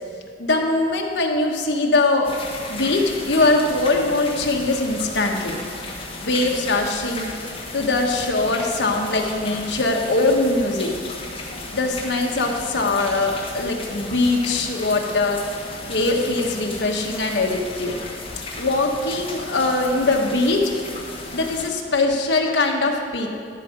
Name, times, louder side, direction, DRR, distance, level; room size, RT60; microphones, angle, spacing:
voice 1, 0.4-2.3 2.7-5.5 6.2-7.3 7.7-10.9 11.7-18.0 18.6-20.7 21.3-23.3, left 2 dB, 70° left, 1 dB, 1.2 m, -21 dB
sound 1, 2.2-21.7, left 2 dB, 30° left, 1.3 m, -35 dB
12.0 x 4.8 x 6.5 m, 2.4 s
head